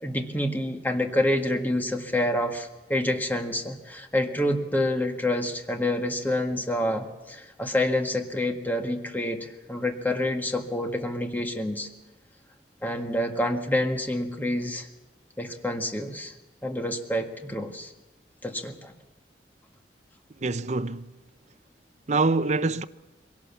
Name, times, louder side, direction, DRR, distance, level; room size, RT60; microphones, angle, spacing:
voice 1, 0.0-11.9 12.8-14.9 15.4-16.3 16.6-17.9 18.4-18.9, left 1 dB, 10° left, 1.7 m, -27 dB
voice 2, 20.3-21.1 22.1-22.8, right 3 dB, 40° right, 0.6 m, -25 dB
22.5 x 18.0 x 7.2 m
head